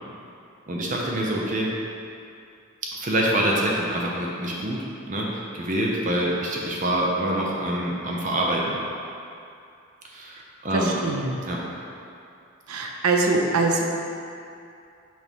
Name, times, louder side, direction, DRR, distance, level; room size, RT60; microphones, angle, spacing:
voice 1, 0.7-1.7 2.9-8.8 10.0-10.9 11.5-11.6, right 1 dB, 35° right, -2 dB, 0.6 m, -26 dB
voice 2, 10.7-11.4 12.7-13.8, right 3 dB, 85° right, 1 dB, 0.6 m, -23 dB
6.1 x 4.3 x 3.6 m, 2.5 s
head